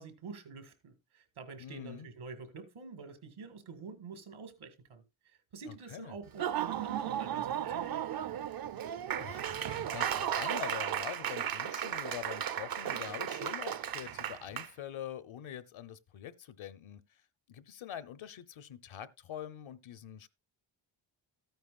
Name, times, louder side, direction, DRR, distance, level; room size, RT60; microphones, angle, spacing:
voice 1, 0.0-8.0, right 4 dB, 75° right, 1.9 m, -47 dB
voice 2, 1.6-2.1 5.7-6.1 9.1-17.0 17.5-20.3, left 10 dB, 70° left, 0.9 m, -44 dB
Laughter / Applause, 6.3-14.7, right 9 dB, 45° right, 0.6 m, -35 dB
13.0 x 9.3 x 2.4 m
cardioid pair, 85°, 49 cm